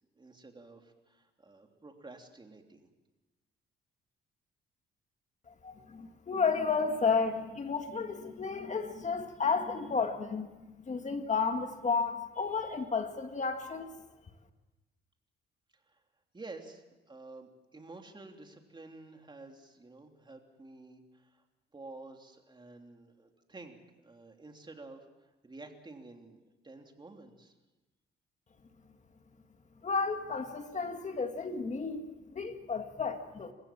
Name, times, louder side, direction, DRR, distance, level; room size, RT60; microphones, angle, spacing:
voice 1, 0.1-2.9 15.7-16.0 16.3-21.4 21.7-27.5, right 3 dB, 25° right, 3 dB, 3.2 m, -51 dB
voice 2, 5.5-13.9 29.8-33.5, left 5 dB, 35° left, 6 dB, 1.9 m, -32 dB
29.0 x 15.5 x 7.5 m, 1.1 s
cardioid pair, 90°, 20 cm